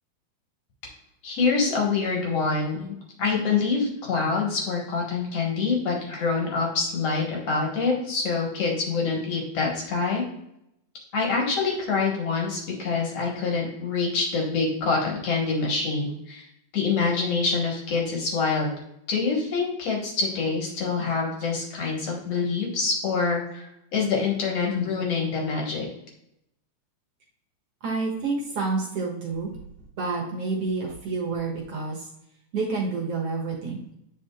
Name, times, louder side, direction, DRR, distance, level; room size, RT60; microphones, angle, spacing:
voice 1, 1.2-2.9 3.2-10.2 11.1-16.5 16.7-18.7 19.1-25.9, left 4 dB, 60° left, -1 dB, 2.2 m, -26 dB
voice 2, 27.8-29.5 30.0-32.1 32.5-33.8, right 4 dB, 60° right, -1 dB, 1.9 m, -28 dB
8.9 x 5.1 x 2.2 m, 0.79 s
omnidirectional pair, 3.5 m